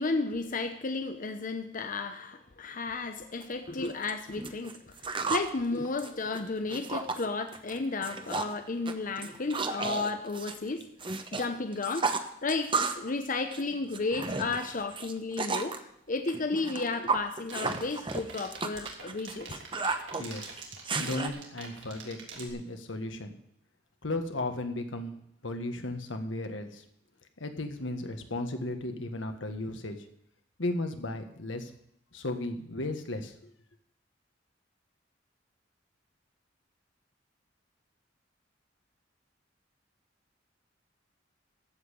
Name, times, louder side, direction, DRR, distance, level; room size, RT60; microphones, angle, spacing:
voice 1, 0.0-12.1 12.4-15.8 16.1-19.6, left 3 dB, 45° left, 7 dB, 0.8 m, -33 dB
sound 1, 3.4-3.5 3.8-5.5 5.8-7.2 7.5-7.8 8.0-8.6 8.9-11.4 11.7-13.1 13.4-15.8 16.3-21.3, right 4 dB, 25° right, 1.0 m, -33 dB
sound 2, 17.4-22.5, right 5 dB, 75° right, 3.3 m, -44 dB
voice 2, 20.2-20.5 21.0-23.4 24.0-25.2 25.4-26.8 27.4-30.0 30.6-31.7 32.1-33.5, left 2 dB, 85° left, 6 dB, 1.6 m, -35 dB
14.5 x 5.7 x 8.2 m, 0.73 s
head